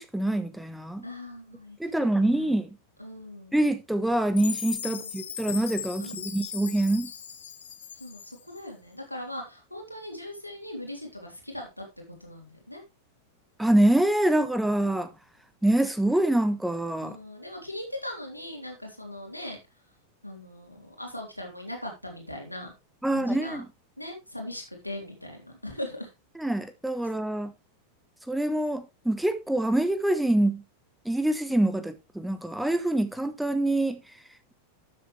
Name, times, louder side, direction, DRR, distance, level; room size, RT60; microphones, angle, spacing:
voice 1, 0.0-1.0 1.8-2.7 3.5-7.1 13.6-15.1 15.6-17.2 23.0-23.7 26.4-27.5 28.3-30.6 31.0-34.0, right 1 dB, 5° right, 1.2 m, -25 dB
voice 2, 1.0-2.5 3.0-3.6 4.9-5.1 6.0-6.3 8.0-11.9 12.2-12.8 17.0-19.6 20.2-22.7 23.1-23.6 24.0-26.1, left 1 dB, 90° left, 3.5 m, -40 dB
Chime, 4.4-8.6, left 8 dB, 65° left, 1.7 m, -38 dB
12.5 x 7.7 x 3.3 m
figure-of-eight pair, 90°, 0 cm